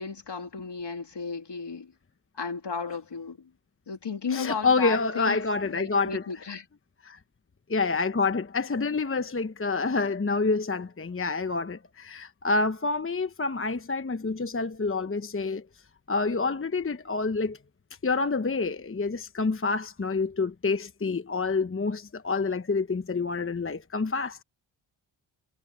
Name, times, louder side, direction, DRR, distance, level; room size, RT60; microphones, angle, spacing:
voice 1, 0.0-1.9 2.3-3.5 3.9-6.6, left 5 dB, 55° left, 3.3 m, -34 dB
voice 2, 4.3-6.2 7.0-7.2 7.7-15.6 16.1-17.6 18.0-24.4, left 4 dB, 25° left, 1.1 m, -27 dB
cardioid pair, 50°, 50 cm